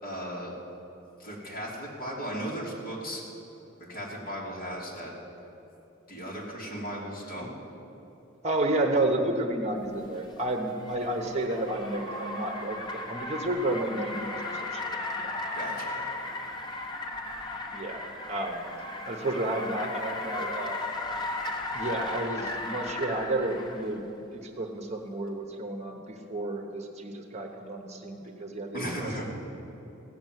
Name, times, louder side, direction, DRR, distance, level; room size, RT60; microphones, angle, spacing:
voice 1, 0.0-0.5 1.2-3.2 3.8-5.1 6.1-7.5 15.5-16.0 28.7-29.2, equal, 45° left, -4 dB, 3.0 m, -36 dB
voice 2, 8.4-15.3 17.7-18.7 19.1-20.8 21.7-24.1 24.3-28.9, right 1 dB, 35° right, 4 dB, 1.0 m, -31 dB
Car, 10.0-23.9, left 2 dB, 20° left, 1.2 m, -36 dB
16.0 x 6.9 x 9.3 m, 3.0 s
head